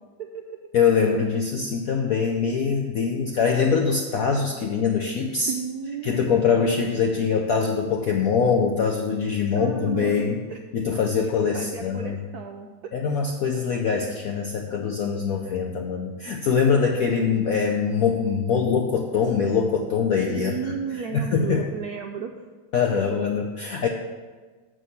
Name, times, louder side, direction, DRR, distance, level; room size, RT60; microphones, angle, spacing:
voice 1, 0.2-0.6 5.4-6.3 9.5-10.6 11.5-12.9 20.3-22.3 22.9-23.0, right 6 dB, 75° right, 3 dB, 0.9 m, -34 dB
voice 2, 0.7-5.5 6.0-10.4 10.7-12.2 12.9-21.7 22.7-23.9, left 6 dB, 75° left, 2 dB, 0.8 m, -23 dB
6.7 x 6.1 x 6.9 m, 1.4 s
omnidirectional pair, 2.2 m